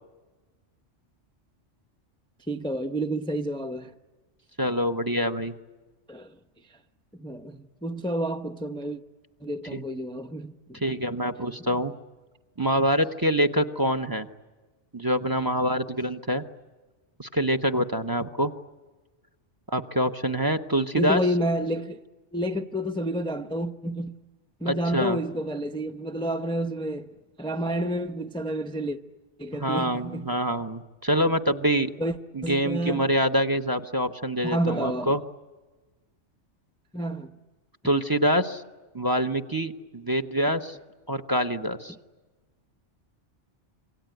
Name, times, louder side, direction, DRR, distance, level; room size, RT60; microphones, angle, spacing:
voice 1, 2.5-3.9 6.1-6.3 7.2-9.0 9.4-10.8 21.0-22.0 22.3-24.1 24.6-27.1 27.4-29.0 29.4-30.3 32.0-32.2 32.4-33.1 34.4-35.1 36.9-37.3, right 1 dB, 5° left, 0.7 m, -29 dB
voice 2, 4.6-5.5 9.7-9.8 10.8-11.9 12.6-14.3 14.9-16.4 17.2-18.5 19.7-21.2 24.7-25.2 29.6-31.9 32.3-35.2 37.8-38.6 38.9-40.8 41.1-41.9, equal, 20° right, 0.9 m, -25 dB
27.0 x 23.5 x 9.2 m
omnidirectional pair, 1.2 m